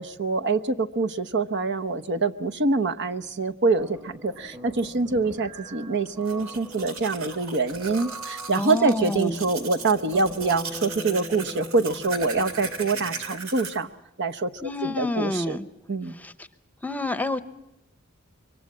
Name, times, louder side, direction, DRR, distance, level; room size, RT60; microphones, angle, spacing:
voice 1, 0.0-13.9 14.2-14.5 14.8-15.6 15.9-16.2, right 3 dB, 55° right, 11 dB, 1.0 m, -25 dB
sound 1, 3.8-13.3, equal, 20° right, 1.4 m, -42 dB
Domestic sounds home sounds, 6.1-13.8, right 5 dB, 80° right, 2.4 m, -38 dB
voice 2, 8.6-9.4 14.6-15.7 16.2-16.3 16.8-17.4, left 2 dB, 10° left, 13 dB, 0.9 m, -28 dB
25.5 x 23.5 x 7.3 m, 0.86 s
head